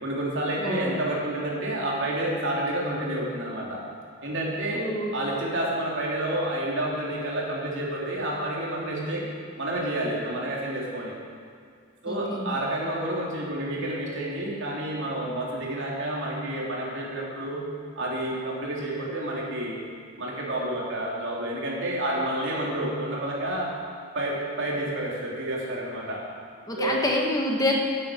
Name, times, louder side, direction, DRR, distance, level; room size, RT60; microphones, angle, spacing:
voice 1, 0.0-3.8 4.2-4.8 5.1-9.3 9.6-11.1 12.0-17.6 17.9-19.8 20.2-23.7 24.1-26.2 26.7-27.0, right 1 dB, 60° right, -3 dB, 3.4 m, -29 dB
voice 2, 0.6-1.0 4.7-5.1 12.1-12.5 26.7-27.7, left 1 dB, 15° left, -1 dB, 1.5 m, -27 dB
12.5 x 8.7 x 9.4 m, 2.1 s
head